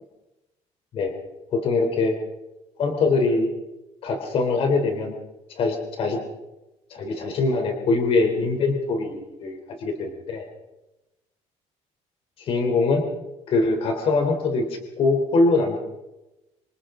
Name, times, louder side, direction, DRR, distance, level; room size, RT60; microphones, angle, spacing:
voice 1, 1.5-2.2 2.8-3.5 4.0-5.2 5.5-6.2 6.9-10.5 12.4-13.1 13.5-14.7 15.0-15.8, left 3 dB, 45° left, 4 dB, 3.6 m, -23 dB
26.5 x 26.0 x 3.9 m, 0.98 s
cardioid pair, 170°, 13 cm